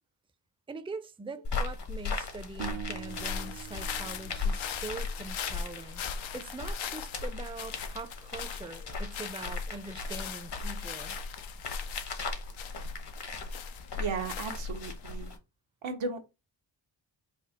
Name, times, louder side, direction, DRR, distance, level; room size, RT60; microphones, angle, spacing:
voice 1, 0.7-6.0 6.3-11.2, right 3 dB, 10° right, 0.5 m, -43 dB
sound 1, 1.4-15.4, left 4 dB, 60° left, 1.2 m, -37 dB
sound 2, 2.6-5.8, right 11 dB, 65° right, 0.7 m, -44 dB
sound 3, 3.1-15.0, left 9 dB, 80° left, 0.7 m, -42 dB
voice 2, 14.0-15.3 15.8-16.2, right 4 dB, 85° right, 1.1 m, -35 dB
4.2 x 2.5 x 4.1 m
cardioid pair, 60°, 46 cm